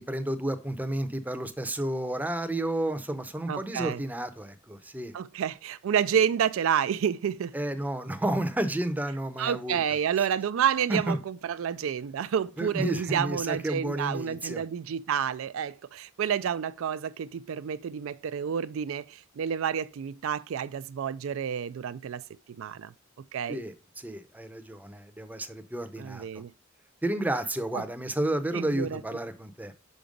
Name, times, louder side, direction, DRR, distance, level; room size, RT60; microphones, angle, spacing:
voice 1, 0.0-5.1 7.5-9.8 10.2-10.3 10.9-11.2 12.6-14.6 23.5-26.2 27.0-29.7, right 1 dB, 10° right, 0.6 m, -31 dB
voice 2, 3.5-4.0 5.1-7.5 9.4-22.2 22.6-22.9 23.3-23.6 26.0-26.5 27.7-27.8 28.5-29.0, right 8 dB, 70° right, 0.4 m, -29 dB
5.8 x 5.2 x 5.1 m
head